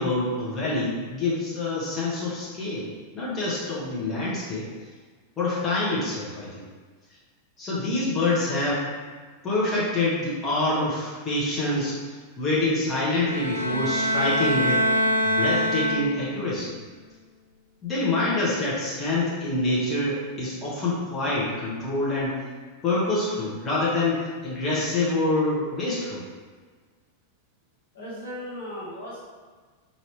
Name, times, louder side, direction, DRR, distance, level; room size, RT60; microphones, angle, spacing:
voice 1, 0.0-2.9 3.1-4.7 5.4-6.7 7.6-8.9 9.4-14.9 15.2-16.7 17.8-22.4 22.8-26.2, left 2 dB, 20° left, -8 dB, 1.1 m, -26 dB
sound 1, 13.2-16.5, equal, 90° right, 0.3 m, -24 dB
voice 2, 27.9-29.2, equal, 60° left, -6 dB, 1.4 m, -36 dB
4.6 x 2.8 x 3.3 m, 1.5 s
figure-of-eight pair, 90°, 0 cm